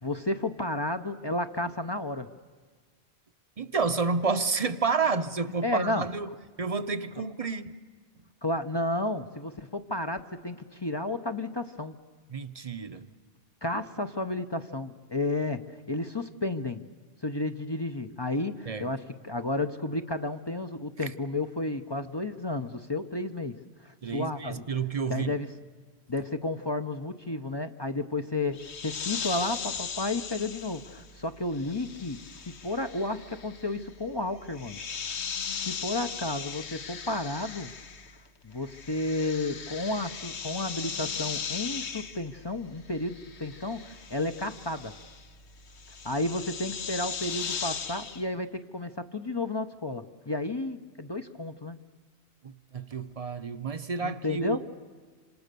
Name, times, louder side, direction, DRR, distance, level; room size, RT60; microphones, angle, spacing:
voice 1, 0.0-2.3 5.6-6.1 8.4-12.0 13.6-16.8 17.2-24.6 25.1-25.5 26.1-32.2 32.5-34.8 35.1-35.2 35.5-37.7 38.4-44.9 46.0-51.8 54.0-54.6, left 2 dB, 25° left, 8 dB, 0.7 m, -32 dB
voice 2, 3.6-6.3 6.6-7.7 12.3-13.1 18.7-18.9 21.0-21.1 24.0-25.4 52.4-54.6, right 4 dB, 35° right, 11 dB, 0.8 m, -30 dB
sound 1, 28.5-38.3 38.5-48.2, left 6 dB, 85° left, 1.4 m, -38 dB
27.0 x 26.0 x 6.8 m, 1.5 s
omnidirectional pair, 1.1 m